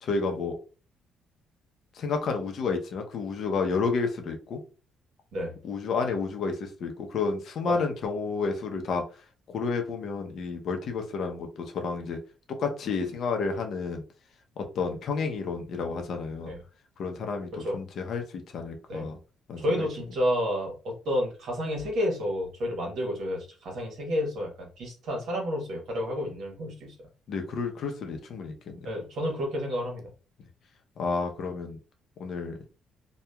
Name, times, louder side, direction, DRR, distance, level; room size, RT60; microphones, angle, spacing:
voice 1, 0.0-0.6 1.9-4.6 5.6-9.0 9.5-12.2 12.6-14.0 14.6-16.5 17.0-19.2 19.5-19.9 27.3-28.9 31.0-31.8 32.2-32.6, left 4 dB, 55° left, 4 dB, 0.6 m, -30 dB
voice 2, 19.6-26.9 28.8-30.0, equal, 65° right, 0 dB, 1.1 m, -30 dB
2.8 x 2.2 x 2.2 m, 0.35 s
cardioid pair, 130°, 0 cm